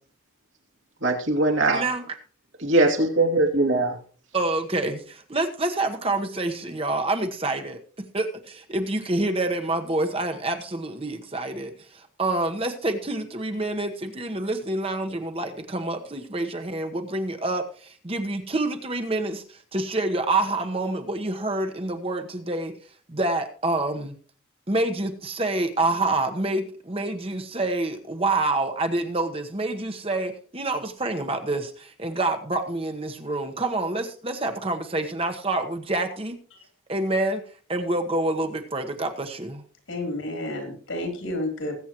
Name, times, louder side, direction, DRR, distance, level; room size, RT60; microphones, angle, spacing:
voice 1, 1.0-1.8 2.6-3.9, right 2 dB, 70° right, 2 dB, 2.7 m, -21 dB
voice 2, 1.7-2.0 4.3-7.8 8.1-22.7 23.1-24.2 24.7-36.4 36.9-37.4 37.7-39.6, right 2 dB, 30° right, 6 dB, 1.1 m, -27 dB
voice 3, 39.9-41.7, left 1 dB, 75° left, 4 dB, 3.5 m, -31 dB
20.0 x 8.2 x 3.0 m, 0.43 s
head